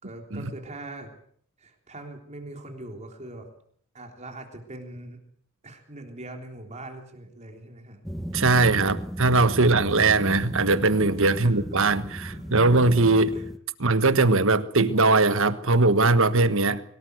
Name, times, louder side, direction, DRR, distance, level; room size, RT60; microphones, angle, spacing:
voice 1, 0.0-1.1 1.6-3.5 3.9-5.2 5.6-8.0 11.4-11.6 12.3-12.5 13.3-13.4, right 2 dB, 30° right, 3.6 m, -41 dB
sound 1, 8.0-13.6, equal, ahead, 1.1 m, -36 dB
voice 2, 8.3-13.4 13.8-16.8, right 3 dB, 60° right, 1.4 m, -20 dB
24.5 x 18.0 x 8.1 m
head